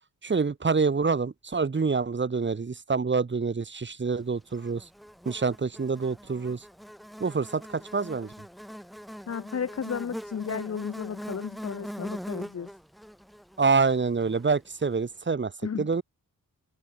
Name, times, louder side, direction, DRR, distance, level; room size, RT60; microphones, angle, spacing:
voice 1, 0.2-4.8 5.3-6.6 7.2-8.3 13.6-15.5 15.8-16.0, right 4 dB, 35° right, 1.8 m, -26 dB
Buzz, 4.5-14.9, equal, ahead, 7.9 m, -42 dB
voice 2, 9.3-12.7 15.6-15.9, left 7 dB, 50° left, 1.1 m, -33 dB
wide cardioid pair, 160°, 33 cm